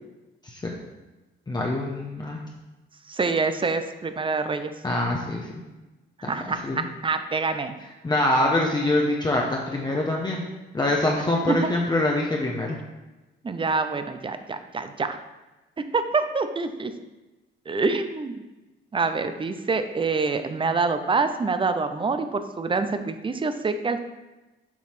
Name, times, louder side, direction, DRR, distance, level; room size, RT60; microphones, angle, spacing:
voice 1, 1.5-2.4 4.8-5.5 6.2-6.3 6.6-6.8 8.0-10.4 10.7-12.8, left 1 dB, 20° left, -2 dB, 1.0 m, -24 dB
voice 2, 3.1-4.7 6.2-7.7 13.4-15.2 15.9-16.9 17.7-18.4 18.9-24.0, right 4 dB, 25° right, 9 dB, 0.6 m, -26 dB
7.3 x 3.1 x 6.0 m, 1.1 s
cardioid pair, 90°, 20 cm